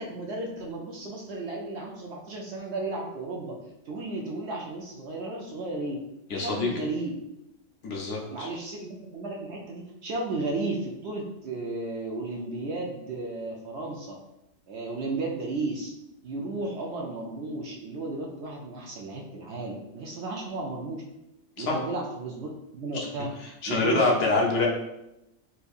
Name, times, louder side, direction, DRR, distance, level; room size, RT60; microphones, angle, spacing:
voice 1, 0.0-3.5 3.9-6.0 6.3-7.1 8.2-14.2 14.7-15.9 16.2-21.0 21.6-23.3 23.7-24.4, right 2 dB, 65° right, -1 dB, 0.7 m, -34 dB
voice 2, 6.3-6.7 7.8-8.5 21.7-21.8 22.9-23.1 23.6-24.7, left 3 dB, 65° left, -1 dB, 0.9 m, -25 dB
4.4 x 2.6 x 2.3 m, 0.89 s
omnidirectional pair, 1.4 m